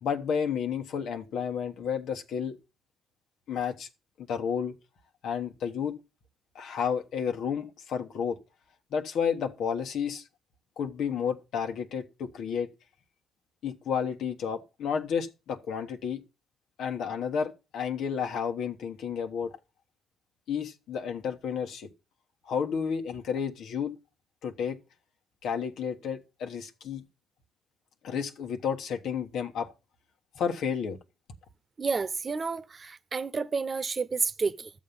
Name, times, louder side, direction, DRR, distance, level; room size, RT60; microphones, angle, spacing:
voice 1, 0.0-2.6 3.5-3.9 4.2-4.7 5.2-5.9 6.5-8.4 8.9-10.2 10.8-12.7 13.6-16.2 16.8-19.6 20.5-21.9 22.4-23.9 24.4-24.8 25.4-27.0 28.0-29.7 30.3-31.0, left 7 dB, 70° left, 1.5 m, -31 dB
voice 2, 31.8-34.7, right 4 dB, 40° right, 1.0 m, -30 dB
13.0 x 7.4 x 5.5 m
hypercardioid pair, 50°, 0 cm